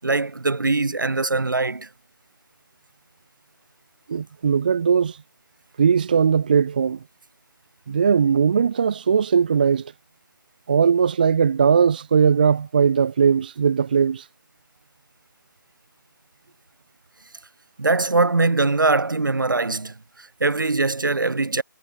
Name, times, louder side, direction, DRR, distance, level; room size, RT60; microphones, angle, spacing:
voice 1, 0.0-1.9 17.8-21.6, right 3 dB, 70° right, 7.7 m, -22 dB
voice 2, 4.1-5.2 5.8-7.0 7.9-9.8 10.7-14.3, right 6 dB, 25° right, 0.4 m, -19 dB
figure-of-eight pair, 160°, 11 cm